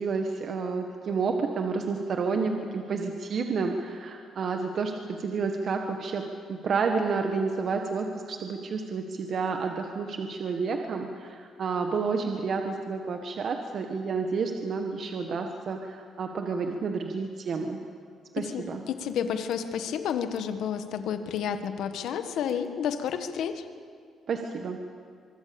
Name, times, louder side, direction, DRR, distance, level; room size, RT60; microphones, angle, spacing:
voice 1, 0.0-17.8 18.3-18.8 24.3-24.8, right 4 dB, 55° right, 4 dB, 1.7 m, -30 dB
voice 2, 18.4-23.6, left 8 dB, 80° left, 9 dB, 1.6 m, -31 dB
24.5 x 23.0 x 7.1 m, 2.2 s
cardioid pair, 90°, 0 cm